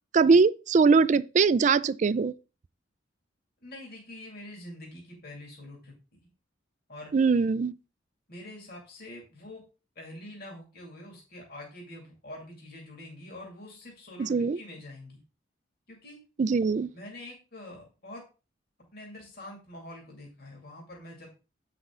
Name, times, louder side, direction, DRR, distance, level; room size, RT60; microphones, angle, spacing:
voice 1, 0.1-2.3 7.1-7.7 14.2-14.6 16.4-16.9, right 4 dB, 40° right, 0.3 m, -22 dB
voice 2, 3.6-6.3 6.9-7.1 8.3-9.7 10.0-15.2 15.9-16.2 16.9-18.2 18.9-21.3, left 1 dB, 50° left, 2.4 m, -45 dB
8.2 x 5.2 x 3.7 m
head